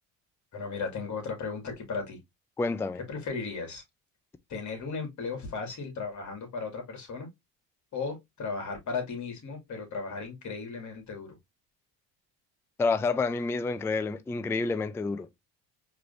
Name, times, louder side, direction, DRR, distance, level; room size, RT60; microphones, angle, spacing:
voice 1, 0.5-2.2 3.1-3.8 4.5-7.3 7.9-11.4, left 4 dB, 45° left, 2.3 m, -36 dB
voice 2, 2.6-3.0 12.8-15.3, left 4 dB, 5° left, 0.3 m, -28 dB
4.8 x 3.2 x 2.6 m
supercardioid pair, 85°, 42 cm